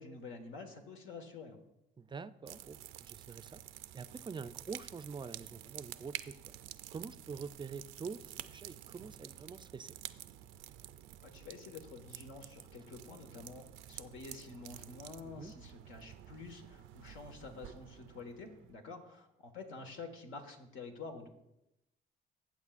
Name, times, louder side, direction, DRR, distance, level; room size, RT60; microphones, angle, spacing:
voice 1, 0.0-1.6 11.2-21.3, left 4 dB, 80° left, 4 dB, 1.5 m, -49 dB
voice 2, 2.0-3.6 3.9-6.4 6.9-10.0 15.2-15.5, right 5 dB, 25° right, 14 dB, 0.4 m, -46 dB
sound 1, 2.5-18.7, right 13 dB, 90° right, 0.4 m, -50 dB
15.0 x 8.1 x 2.5 m, 0.89 s
cardioid pair, 90°, 20 cm